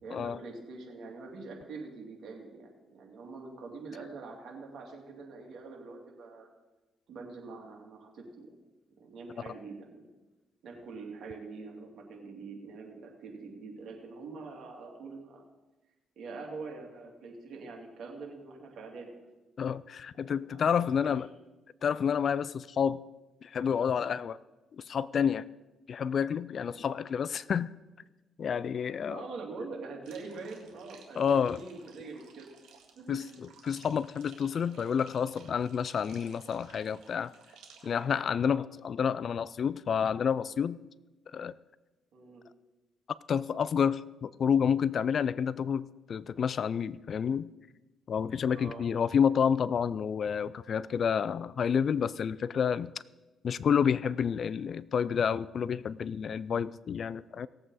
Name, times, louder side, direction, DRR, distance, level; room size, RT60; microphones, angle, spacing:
voice 1, 0.0-6.5 7.1-8.5 9.0-10.1 10.6-15.4 16.2-19.1 20.2-20.7 21.0-21.1 29.1-32.5 32.9-33.2 38.4-38.6 42.1-42.5 48.5-48.9, right 4 dB, 65° right, 0 dB, 2.8 m, -44 dB
voice 2, 19.6-21.3 21.8-23.0 23.4-24.4 24.8-25.5 25.9-27.7 28.4-29.2 31.2-31.6 33.1-37.3 37.8-40.8 41.3-41.5 43.3-47.5 48.1-52.9 53.4-57.5, left 7 dB, 55° left, 18 dB, 0.4 m, -29 dB
sound 1, 30.0-38.0, right 6 dB, 85° right, 1.8 m, -57 dB
18.0 x 7.7 x 4.1 m, 1.1 s
cardioid pair, 90°, 0 cm